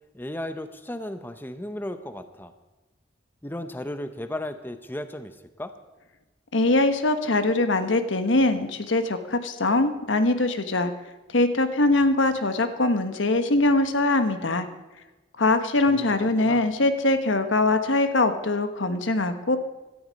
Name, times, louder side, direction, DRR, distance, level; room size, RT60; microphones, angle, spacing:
voice 1, 0.1-2.5 3.4-5.7 15.9-16.7, left 1 dB, 10° left, 9 dB, 0.7 m, -35 dB
voice 2, 6.5-10.9 11.3-14.7 15.4-19.6, left 2 dB, 85° left, 9 dB, 1.2 m, -22 dB
17.0 x 13.0 x 5.2 m, 1.1 s
head